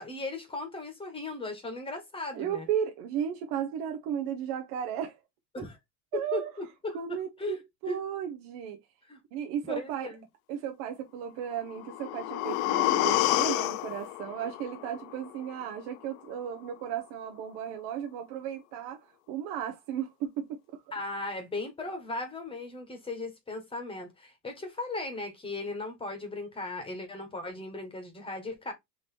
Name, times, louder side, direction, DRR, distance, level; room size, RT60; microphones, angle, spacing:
voice 1, 0.0-2.7 5.5-5.8 6.1-7.6 7.9-8.0 9.1-9.2 9.6-10.2 20.9-28.7, left 2 dB, 10° left, 1.2 m, -37 dB
voice 2, 2.3-5.2 5.6-5.7 6.1-6.5 6.9-8.8 9.3-10.1 10.5-20.6, right 9 dB, 55° right, 0.8 m, -35 dB
sound 1, 11.7-15.7 16.0-16.1, left 16 dB, 70° left, 0.6 m, -29 dB
4.0 x 2.9 x 4.3 m
supercardioid pair, 145°, 45 cm